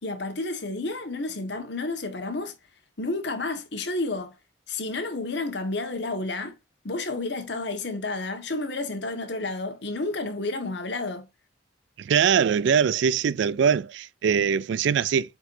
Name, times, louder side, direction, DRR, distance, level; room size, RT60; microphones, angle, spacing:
voice 1, 0.0-2.5 3.0-4.4 4.7-6.5 6.8-11.3, left 2 dB, 60° left, 1.5 m, -31 dB
voice 2, 12.0-15.4, right 7 dB, 65° right, 0.3 m, -22 dB
7.9 x 4.6 x 2.6 m
head